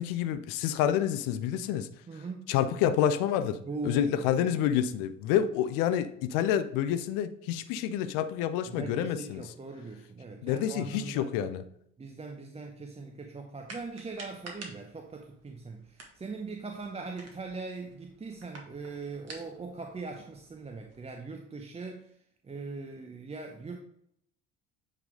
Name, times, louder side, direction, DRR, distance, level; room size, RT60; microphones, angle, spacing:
voice 1, 0.0-1.9 2.5-3.6 3.8-9.4 10.4-11.6, left 10 dB, 60° left, 0.6 m, -28 dB
voice 2, 2.1-2.5 3.6-4.3 8.6-11.3 12.0-22.1 22.4-23.8, right 3 dB, 15° right, 0.7 m, -40 dB
sound 1, 13.6-21.0, right 3 dB, 40° right, 1.6 m, -51 dB
8.4 x 3.4 x 3.6 m
hypercardioid pair, 55°, 38 cm